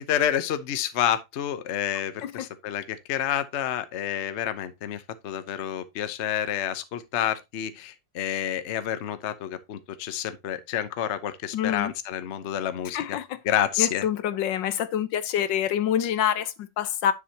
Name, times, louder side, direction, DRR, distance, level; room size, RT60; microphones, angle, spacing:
voice 1, 0.0-13.2 13.4-14.0, left 10 dB, 50° left, 0.9 m, -29 dB
voice 2, 11.5-11.9 12.9-13.3 13.8-17.1, left 10 dB, 80° left, 1.5 m, -26 dB
9.9 x 6.7 x 2.8 m
omnidirectional pair, 2.0 m